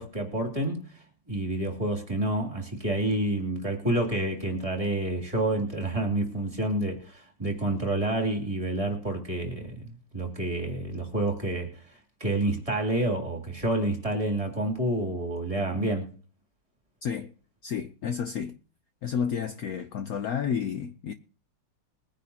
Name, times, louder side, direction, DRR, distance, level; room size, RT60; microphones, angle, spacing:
voice 1, 0.0-16.1, right 1 dB, 15° right, 2.9 m, -29 dB
voice 2, 17.0-17.3 17.6-18.6 19.0-21.1, left 7 dB, 75° left, 0.8 m, -31 dB
22.0 x 10.0 x 2.9 m
omnidirectional pair, 2.4 m